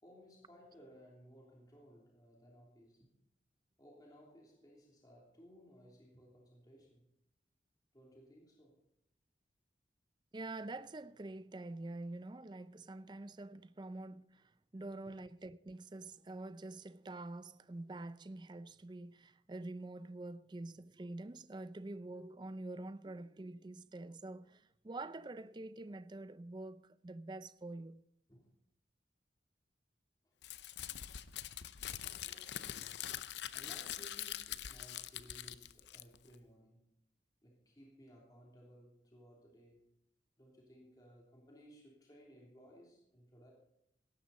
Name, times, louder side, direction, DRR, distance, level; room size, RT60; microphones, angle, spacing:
voice 1, 0.0-3.1 3.8-7.1 7.9-8.8 15.0-15.2 28.3-28.5 30.2-30.3 31.1-31.6 32.2-33.1 33.5-36.8 37.4-39.8 40.4-43.5, equal, 20° left, 3.2 m, -60 dB
voice 2, 10.3-28.0, right 2 dB, 25° right, 0.4 m, -46 dB
Crumpling crinkling, 30.4-36.3, left 11 dB, 75° left, 0.6 m, -44 dB
17.5 x 12.5 x 4.1 m
head